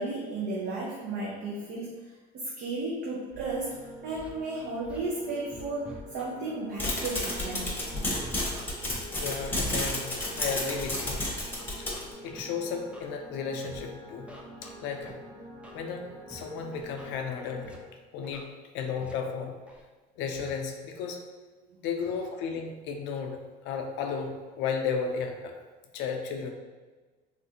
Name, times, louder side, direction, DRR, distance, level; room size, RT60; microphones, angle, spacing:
voice 1, 0.0-2.0 2.3-3.7 4.0-7.7, right 2 dB, 65° right, -4 dB, 0.6 m, -34 dB
sound 1, 3.3-17.7, equal, 25° right, 1.2 m, -47 dB
Scratching (performance technique), 4.2-4.3 4.8-5.0 5.5-6.3 6.9-7.0 7.5-7.7 8.2-9.1 9.6-9.7 10.2-10.5 10.9-11.1 11.6-12.4 12.9-13.1 13.6-13.8 14.3-15.1 15.6-15.8 16.3-16.4 16.7-17.1 17.6-17.8 18.2-18.4 19.0-19.1 19.7-19.8 20.3-20.5, right 1 dB, 5° right, 0.4 m, -47 dB
sound 2, 6.8-12.1, left 1 dB, 10° left, 0.8 m, -31 dB
voice 2, 9.1-11.2 11.8-11.9 12.2-14.3 14.6-15.2 15.7-17.8 18.1-19.6 20.2-21.2 21.8-25.5 25.9-26.5, left 6 dB, 80° left, 3 dB, 0.4 m, -34 dB
3.3 x 2.5 x 2.7 m, 1.3 s
cardioid pair, 110°, 19 cm